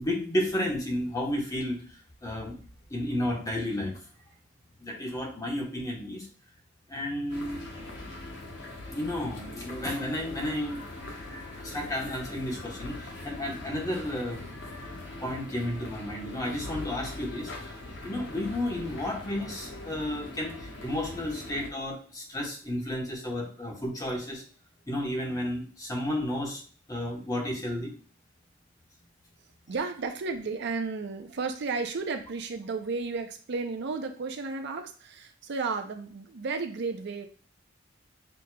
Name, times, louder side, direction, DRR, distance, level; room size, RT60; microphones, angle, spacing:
voice 1, 0.0-2.6 2.9-4.0 4.8-6.3 6.9-7.6 8.9-10.8 11.1-11.2 11.6-14.4 15.2-17.8 18.0-24.4 24.9-26.6 26.9-27.9, left 1 dB, 20° left, -1 dB, 1.0 m, -32 dB
sound 1, 7.3-21.7, left 2 dB, 65° left, 1.0 m, -41 dB
voice 2, 29.7-37.3, right 4 dB, 60° right, 6 dB, 0.5 m, -33 dB
6.2 x 2.9 x 2.2 m, 0.42 s
head